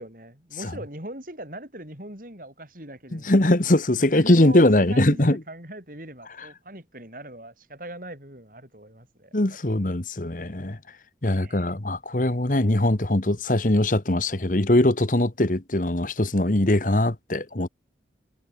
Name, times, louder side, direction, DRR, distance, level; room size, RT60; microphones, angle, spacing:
voice 1, 0.0-3.4 4.1-9.3 11.2-11.7, right 1 dB, 50° right, 7.7 m, -40 dB
voice 2, 3.1-5.4 9.3-10.8 11.2-17.7, left 1 dB, 45° left, 1.4 m, -21 dB
head